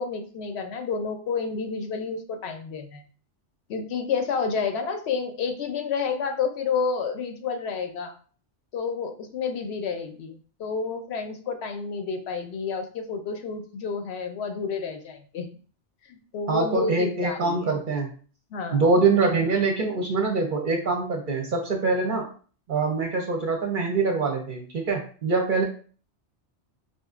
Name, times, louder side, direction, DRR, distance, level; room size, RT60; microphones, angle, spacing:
voice 1, 0.0-3.0 3.7-8.1 8.7-15.5 16.0-17.7 18.5-18.8, left 5 dB, 70° left, 6 dB, 0.8 m, -30 dB
voice 2, 16.5-18.1 18.7-22.3 22.7-25.6, right 4 dB, 55° right, 2 dB, 0.7 m, -24 dB
4.3 x 2.5 x 2.4 m, 0.41 s
omnidirectional pair, 1.2 m